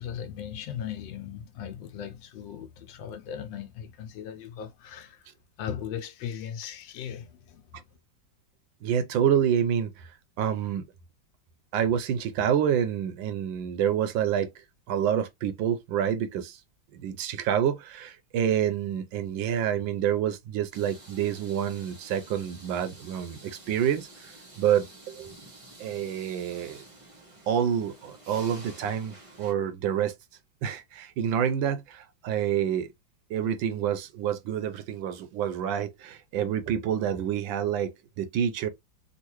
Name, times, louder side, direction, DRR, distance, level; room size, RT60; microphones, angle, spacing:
voice 1, 0.0-5.3 5.6-7.9, left 9 dB, 80° left, 1.3 m, -38 dB
voice 2, 8.8-10.1 10.4-10.8 11.7-14.5 14.9-16.6 16.9-24.1 24.6-25.3 25.8-26.8 27.5-30.1 30.6-32.9 33.3-38.7, right 9 dB, 80° right, 1.3 m, -28 dB
sound 1, 20.7-29.5, right 2 dB, 30° right, 0.6 m, -50 dB
3.7 x 2.4 x 3.0 m
omnidirectional pair, 2.1 m